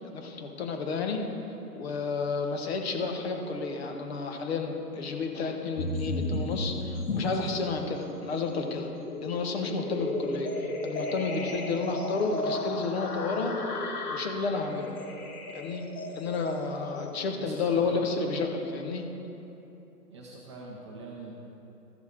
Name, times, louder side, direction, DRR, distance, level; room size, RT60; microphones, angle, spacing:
voice 1, 0.1-1.2 1.7-8.9 9.2-13.6 14.1-14.9 15.5-15.9 16.1-19.0, left 4 dB, 40° left, 4 dB, 1.1 m, -31 dB
sound 1, 5.8-7.7 8.1-17.1, left 2 dB, 65° left, 1.6 m, -35 dB
voice 2, 17.3-18.2 20.1-21.3, right 3 dB, 20° right, -3 dB, 0.6 m, -42 dB
14.0 x 5.5 x 4.6 m, 3.0 s
hypercardioid pair, 140°, 48 cm